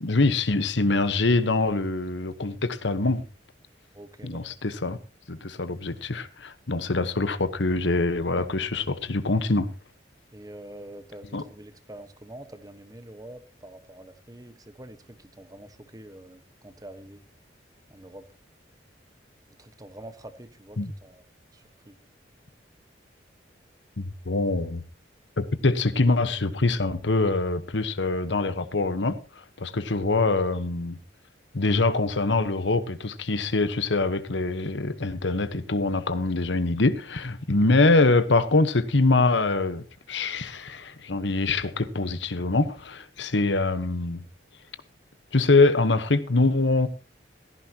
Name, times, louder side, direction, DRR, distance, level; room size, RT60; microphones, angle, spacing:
voice 1, 0.0-3.2 4.2-5.0 5.3-9.7 11.3-11.4 20.8-20.9 24.0-24.8 25.4-29.2 29.6-31.0 31.5-44.2 45.3-46.9, left 3 dB, 75° left, 1.2 m, -24 dB
voice 2, 3.9-4.4 10.3-17.2 17.9-18.2 19.6-21.2 21.5-21.9, right 1 dB, 20° right, 1.3 m, -45 dB
16.5 x 14.5 x 2.9 m
head